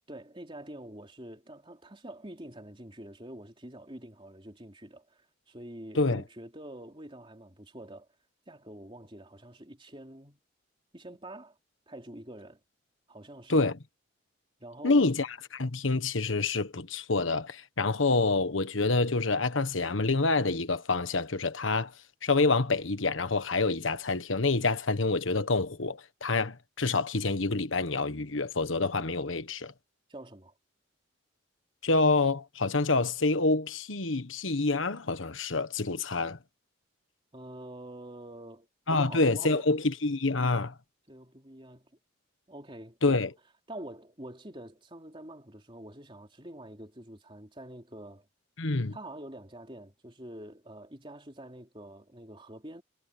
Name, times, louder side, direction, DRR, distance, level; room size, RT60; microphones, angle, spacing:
voice 1, 0.1-8.1 8.5-10.4 10.9-11.6 11.9-12.6 13.1-13.6 14.6-15.1 30.1-30.5 37.3-39.7 41.1-42.0 42.5-43.3 43.7-48.3 48.9-52.8, right 1 dB, 25° right, 3.4 m, -46 dB
voice 2, 14.8-15.3 15.5-21.9 22.2-29.7 31.8-36.4 38.9-40.7 43.0-43.3 48.6-49.0, left 3 dB, 90° left, 1.4 m, -27 dB
head